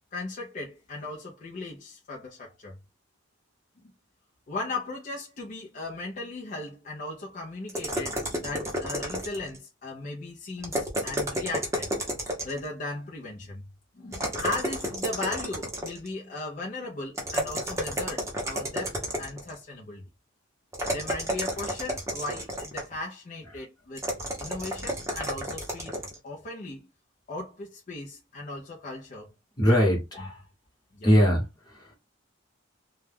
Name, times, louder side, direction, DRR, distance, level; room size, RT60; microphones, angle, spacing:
voice 1, 0.1-2.8 4.5-11.9 12.4-13.7 13.9-20.0 20.9-24.0 24.4-26.0 26.2-26.9 27.3-29.3 29.7-29.8 30.9-31.1, left 2 dB, 40° left, 0.5 m, -37 dB
sound 1, 7.7-9.6 10.6-12.7 14.1-16.1 17.1-19.5 20.7-23.0 24.0-26.2, equal, 15° right, 0.7 m, -31 dB
voice 2, 29.6-30.4 31.0-31.9, equal, 20° left, 1.0 m, -22 dB
2.2 x 2.2 x 3.2 m
head